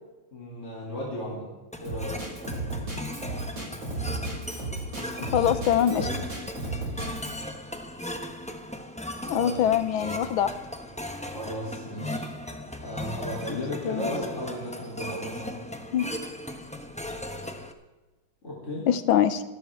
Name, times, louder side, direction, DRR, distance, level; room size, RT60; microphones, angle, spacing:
voice 1, 0.3-1.5 1.8-2.2 5.4-5.5 5.8-6.2 9.4-9.6 11.3-12.3 12.8-15.6 18.4-18.9, left 1 dB, 35° left, -5 dB, 3.9 m, -35 dB
sound 1, 1.7-17.7, left 1 dB, 5° left, 0.5 m, -37 dB
Drum kit, 1.8-7.4, right 2 dB, 70° right, 6.0 m, -34 dB
voice 2, 5.3-6.1 9.3-10.5 13.8-14.1 15.9-16.1 18.9-19.4, left 10 dB, 80° left, 12 dB, 1.7 m, -23 dB
25.5 x 12.5 x 3.7 m, 1.1 s
omnidirectional pair, 2.3 m